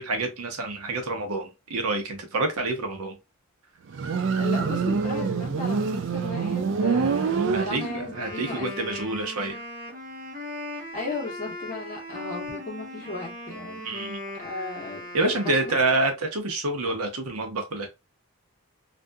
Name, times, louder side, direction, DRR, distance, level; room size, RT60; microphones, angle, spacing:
voice 1, 0.0-3.2 7.5-9.6 13.8-14.2 15.1-17.9, right 2 dB, 80° right, 0.8 m, -27 dB
Motorcycle, 3.9-8.3, right 5 dB, 55° right, 0.3 m, -26 dB
voice 2, 4.4-9.2 10.7-15.8, left 2 dB, 35° left, 1.1 m, -36 dB
Wind instrument woodwind instrument, 8.0-16.1, left 1 dB, 35° right, 0.7 m, -38 dB
2.6 x 2.5 x 2.2 m
head